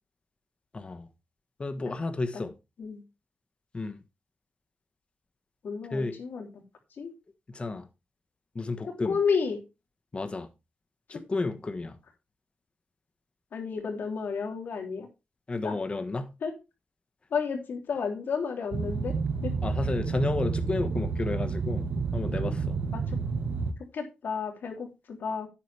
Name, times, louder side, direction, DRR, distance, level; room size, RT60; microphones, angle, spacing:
voice 1, 0.7-1.1 1.6-2.5 3.7-4.0 5.9-6.2 7.5-7.9 8.5-9.2 10.1-10.5 11.1-12.0 15.5-16.3 19.6-22.8, left 3 dB, 35° left, 1.4 m, -32 dB
voice 2, 5.6-6.6 7.0-7.1 9.0-9.6 11.1-11.2 13.5-15.1 15.6-15.7 16.4-16.5 17.3-19.1 19.4-19.5 22.4-22.5 22.9-23.2 23.9-25.5, left 5 dB, 75° left, 3.2 m, -31 dB
Boat Water vehicle, 18.7-23.7, right 5 dB, 65° right, 1.3 m, -30 dB
11.0 x 9.2 x 3.4 m
cardioid pair, 95°, 3 cm